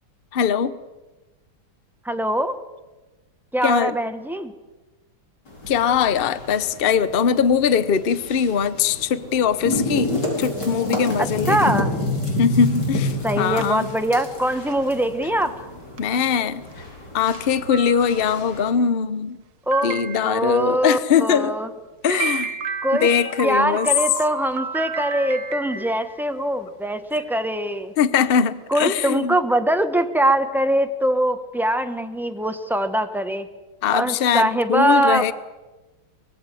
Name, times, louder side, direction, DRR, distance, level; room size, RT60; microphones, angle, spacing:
voice 1, 0.3-0.7 3.6-3.9 5.7-11.8 12.4-13.9 16.0-16.6 17.1-19.4 19.8-21.5 22.0-22.6 23.0-23.9 25.8-25.9 28.0-29.4 33.8-35.3, left 7 dB, 85° left, 14 dB, 0.5 m, -21 dB
voice 2, 2.0-2.6 3.5-4.5 11.2-11.9 13.2-15.5 19.7-21.7 22.8-23.1 23.4-27.9 28.7-33.5 33.9-35.3, right 1 dB, ahead, 7 dB, 0.4 m, -22 dB
sound 1, 5.5-18.7, left 2 dB, 50° left, 5.1 m, -29 dB
sound 2, 13.6-14.0 14.7-14.8 15.4-15.5 16.0-16.1 16.7-16.8 17.3-17.4 17.7-18.5 19.7-20.6 22.1-26.3, right 5 dB, 50° right, 1.4 m, -31 dB
24.0 x 20.0 x 7.7 m, 1.1 s
omnidirectional pair, 2.4 m